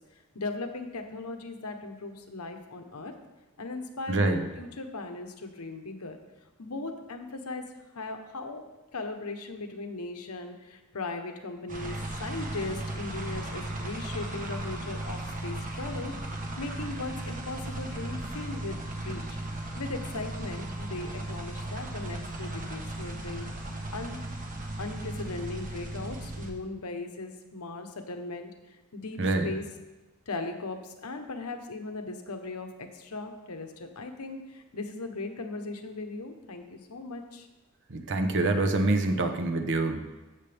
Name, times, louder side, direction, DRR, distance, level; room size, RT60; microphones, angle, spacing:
voice 1, 0.3-3.1 3.6-6.2 6.6-7.6 7.9-8.6 8.9-16.1 16.4-19.2 19.8-23.5 23.9-24.2 24.8-29.6 30.3-37.5, left 3 dB, 85° left, 5 dB, 1.1 m, -38 dB
voice 2, 4.1-4.4 29.2-29.5 37.9-40.0, right 2 dB, 55° right, 6 dB, 1.0 m, -26 dB
sound 1, 11.7-26.5, right 1 dB, 40° right, 1.2 m, -36 dB
14.5 x 6.8 x 3.5 m, 1.1 s
head